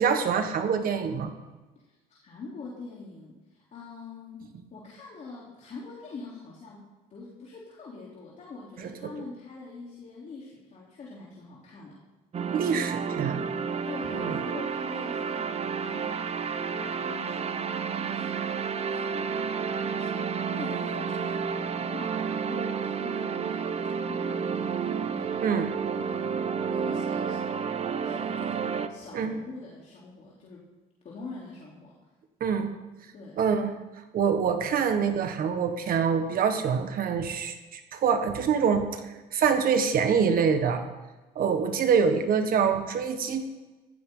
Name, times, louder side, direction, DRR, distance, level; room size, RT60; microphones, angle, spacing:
voice 1, 0.0-1.3 8.8-9.1 12.5-13.4 14.1-14.4 25.4-25.7 29.1-29.4 32.4-32.8 33.4-33.7 34.1-40.8 41.4-43.4, right 6 dB, 60° right, 7 dB, 1.6 m, -25 dB
voice 2, 1.8-4.4 4.7-6.8 7.1-12.0 13.9-15.5 15.8-16.3 16.5-19.4 19.7-25.5 25.9-27.4 28.0-30.6 31.0-31.9 33.1-33.4, left 3 dB, 45° left, -5 dB, 3.7 m, -44 dB
sound 1, 12.3-28.9, right 6 dB, 40° right, 0.9 m, -31 dB
16.0 x 14.5 x 3.9 m, 1.2 s
cardioid pair, 110°, 17 cm